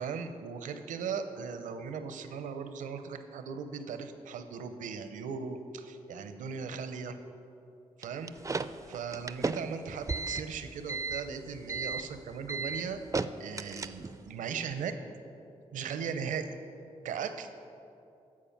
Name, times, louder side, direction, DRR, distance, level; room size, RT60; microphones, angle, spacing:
voice 1, 0.0-7.1 8.0-8.3 8.9-13.0 13.4-14.0 14.3-14.9 15.7-16.5 17.0-17.5, right 6 dB, 85° right, 9 dB, 0.6 m, -38 dB
sound 1, 8.0-14.3, right 4 dB, 25° right, 0.4 m, -35 dB
14.0 x 4.9 x 5.8 m, 2.7 s
supercardioid pair, 50°, 13 cm